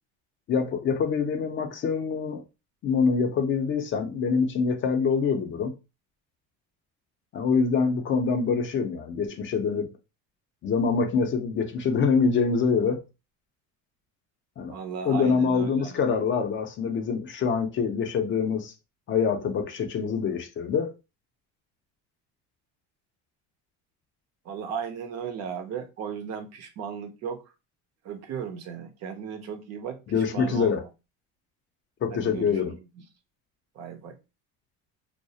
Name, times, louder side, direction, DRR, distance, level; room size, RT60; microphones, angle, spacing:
voice 1, 0.5-2.4 2.8-5.7 7.3-9.9 10.6-13.0 14.6-14.8 15.1-18.7 19.1-20.9 30.1-30.8 32.0-32.7, left 5 dB, 35° left, 0.4 m, -25 dB
voice 2, 14.7-16.0 24.4-27.4 28.0-30.7 32.1-32.8 33.7-34.2, right 7 dB, 50° right, 0.5 m, -36 dB
2.3 x 2.0 x 2.7 m
cardioid pair, 125°, 33 cm